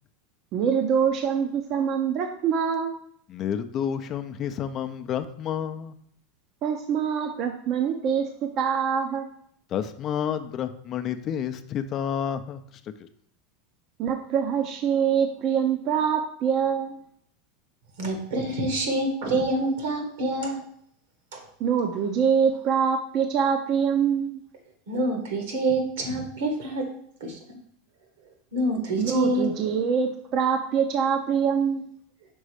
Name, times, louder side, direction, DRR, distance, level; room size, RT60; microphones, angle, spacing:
voice 1, 0.5-3.0 6.6-8.3 8.6-9.3 14.0-17.0 21.6-24.4 29.0-31.9, right 7 dB, 45° right, 4 dB, 0.6 m, -24 dB
voice 2, 3.3-6.0 9.7-12.6, left 8 dB, 40° left, 9 dB, 0.5 m, -30 dB
voice 3, 18.0-20.6 21.3-21.4 24.9-26.9 27.2-27.4 28.5-29.5, right 1 dB, 80° right, 3 dB, 1.7 m, -26 dB
5.4 x 3.9 x 4.9 m, 0.65 s
supercardioid pair, 125°, 0 cm